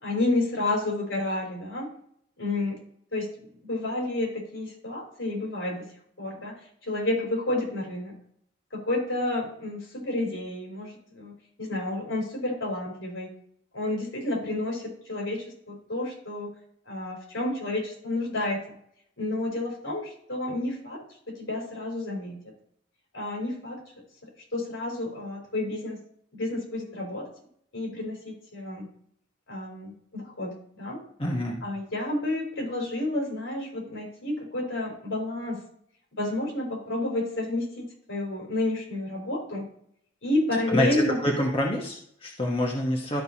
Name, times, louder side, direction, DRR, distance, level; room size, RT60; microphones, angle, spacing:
voice 1, 0.0-1.9 2.4-2.8 3.1-3.3 3.6-5.8 6.2-6.5 6.8-8.2 8.7-11.3 11.6-13.3 13.7-16.5 16.9-18.6 19.2-21.0 21.4-22.4 23.1-23.8 24.5-26.0 26.3-27.3 27.7-28.9 29.5-31.0 31.6-35.6 36.2-39.7 40.2-41.2, left 2 dB, 85° left, -2 dB, 3.9 m, -30 dB
voice 2, 31.2-31.6 40.7-43.2, left 1 dB, 30° left, -1 dB, 1.1 m, -26 dB
12.5 x 5.7 x 2.8 m, 0.64 s
head